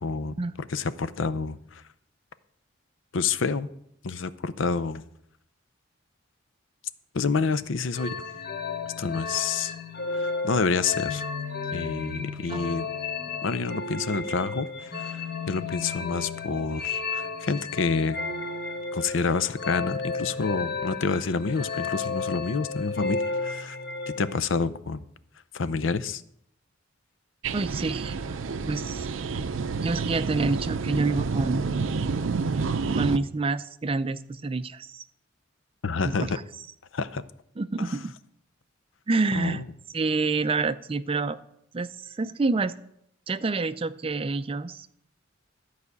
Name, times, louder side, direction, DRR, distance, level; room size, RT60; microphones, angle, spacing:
voice 1, 0.0-1.8 3.1-3.7 4.0-5.0 7.1-8.2 9.0-9.7 10.1-11.3 11.7-12.9 13.4-18.2 18.9-23.8 24.1-25.0 25.5-26.2 35.8-36.4 36.9-37.2 37.8-38.0 39.3-39.6, left 4 dB, 75° left, 14 dB, 0.6 m, -28 dB
sound 1, 7.9-24.4, left 4 dB, 50° left, 1.3 m, -33 dB
sound 2, 27.4-33.2, right 4 dB, 80° right, 0.6 m, -29 dB
voice 2, 27.5-28.4 28.7-29.1 29.8-31.7 33.0-35.0 36.0-36.3 37.6-38.1 39.1-39.6 39.9-41.4 41.7-42.7 43.3-44.9, right 3 dB, 30° right, 13 dB, 0.4 m, -27 dB
13.5 x 4.9 x 8.2 m, 0.74 s
head